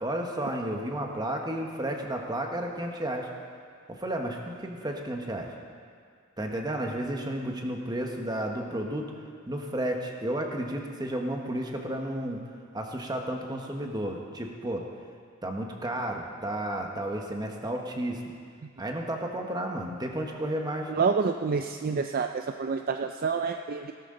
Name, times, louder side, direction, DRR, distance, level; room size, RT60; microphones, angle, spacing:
voice 1, 0.0-3.3 3.9-5.5 6.4-9.1 9.5-12.4 12.7-14.9 15.4-18.2 18.8-20.9, right 1 dB, 20° right, 2 dB, 1.2 m, -32 dB
voice 2, 20.9-23.9, right 5 dB, 45° right, 6 dB, 0.4 m, -28 dB
17.0 x 13.0 x 3.9 m, 2.1 s
head